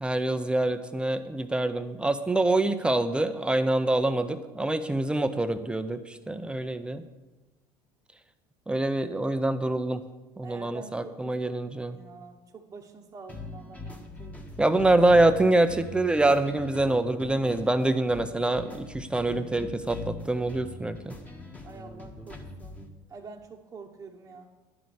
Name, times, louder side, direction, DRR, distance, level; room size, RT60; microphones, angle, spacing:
voice 1, 0.0-7.0 8.7-10.0 10.4-12.0 14.6-21.2, right 2 dB, 10° right, 9 dB, 0.6 m, -25 dB
voice 2, 10.4-14.7 21.6-24.5, right 4 dB, 30° right, -2 dB, 1.1 m, -47 dB
sound 1, 13.3-22.9, left 2 dB, 15° left, 1.5 m, -42 dB
11.0 x 6.1 x 8.4 m, 1.1 s
supercardioid pair, 110°, 10 cm